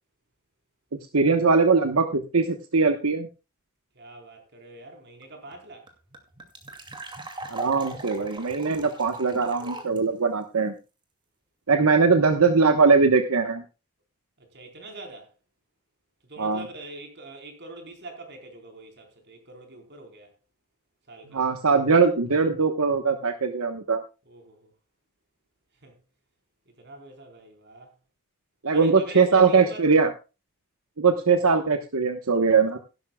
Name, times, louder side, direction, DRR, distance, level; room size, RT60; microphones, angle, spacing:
voice 1, 1.1-3.3 7.5-10.7 11.7-13.6 16.4-16.6 21.3-24.0 28.6-30.1 31.0-32.8, right 4 dB, 85° right, 1.1 m, -21 dB
voice 2, 3.9-5.9 11.9-12.1 14.4-15.4 16.2-20.3 21.1-21.4 24.3-24.7 25.8-26.0 26.8-27.9 28.7-30.0, right 2 dB, 50° right, 4.2 m, -44 dB
sound 1, 5.2-5.3 5.5-5.6 5.9-10.0, right 2 dB, 20° right, 2.4 m, -39 dB
16.0 x 12.0 x 2.3 m
head